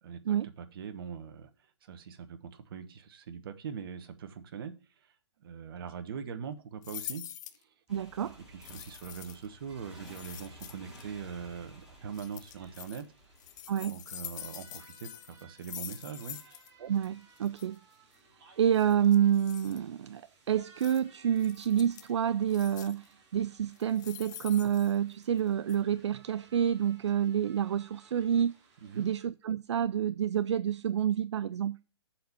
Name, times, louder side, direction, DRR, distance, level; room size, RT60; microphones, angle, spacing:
voice 1, 0.0-7.2 7.6-7.7 8.5-13.1 13.9-16.4 28.8-29.1, right 7 dB, 50° right, 1.2 m, -42 dB
sound 1, 6.8-7.6 8.6-9.5 10.0-11.0 12.1-13.0 13.4-16.7 17.0-17.1 17.4-17.7 18.7-19.8 20.8-21.0 21.4-22.1 22.5-23.1 23.7-25.4 25.7-25.8, left 12 dB, 40° left, 0.7 m, -45 dB
Motorcycle, 7.9-14.3, left 1 dB, 5° right, 2.5 m, -54 dB
voice 2, 7.9-8.4 13.7-14.0 16.8-17.8 18.6-28.5 29.0-31.8, right 9 dB, 75° right, 0.4 m, -28 dB
sound 2, 9.7-29.2, right 4 dB, 25° right, 2.2 m, -61 dB
7.6 x 4.4 x 6.9 m
hypercardioid pair, 145°, 15 cm